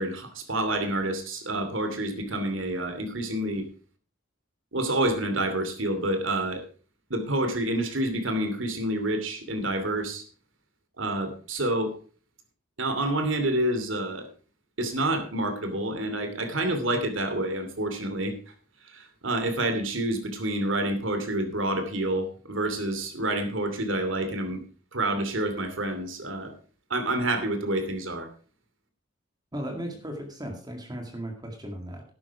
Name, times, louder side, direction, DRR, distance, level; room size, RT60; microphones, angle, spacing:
voice 1, 0.0-3.6 4.7-6.6 7.1-10.2 11.0-11.9 12.8-14.3 14.8-18.4 18.9-24.6 24.9-26.5 26.9-28.3, right 1 dB, 70° right, 8 dB, 2.8 m, -28 dB
voice 2, 29.5-32.0, equal, 20° right, 3 dB, 2.1 m, -36 dB
12.0 x 9.5 x 4.8 m, 0.39 s
head